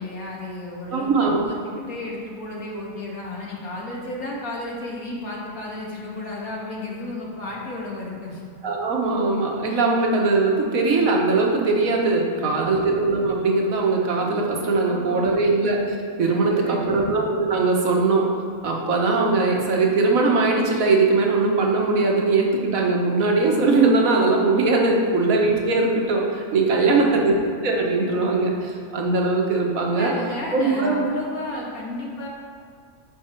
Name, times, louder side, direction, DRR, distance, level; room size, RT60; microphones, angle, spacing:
voice 1, 0.0-8.4 12.3-12.8 14.8-15.5 16.4-17.0 25.0-25.1 26.8-27.2 29.9-32.3, left 2 dB, 65° left, -4 dB, 2.0 m, -33 dB
voice 2, 0.9-1.4 8.6-18.3 18.6-27.4 27.6-30.1 30.5-31.1, right 3 dB, 65° right, 0 dB, 1.5 m, -20 dB
8.4 x 6.1 x 4.4 m, 2.4 s
omnidirectional pair, 1.6 m